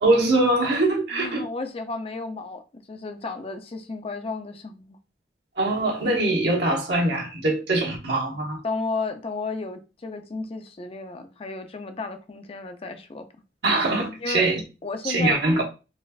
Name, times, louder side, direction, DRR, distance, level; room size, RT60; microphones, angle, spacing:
voice 1, 0.0-1.4 5.6-8.6 13.6-14.6 15.0-15.6, right 2 dB, 70° right, 1.1 m, -22 dB
voice 2, 1.1-2.6 2.9-5.0 8.6-13.3 14.2-14.4 14.8-15.4, left 3 dB, 35° left, 0.4 m, -33 dB
4.0 x 2.5 x 2.3 m
head